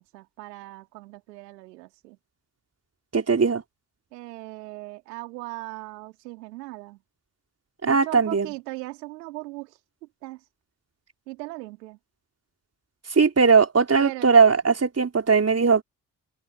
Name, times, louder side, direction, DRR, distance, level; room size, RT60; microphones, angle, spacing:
voice 1, 0.0-2.2 4.1-7.0 7.8-9.8 10.2-10.4 11.3-12.0 14.0-14.3, right 20 dB, 80° right, 3.0 m, -39 dB
voice 2, 3.1-3.6 7.8-8.5 13.1-15.8, right 5 dB, 30° right, 4.9 m, -19 dB
figure-of-eight pair, 40°, 49 cm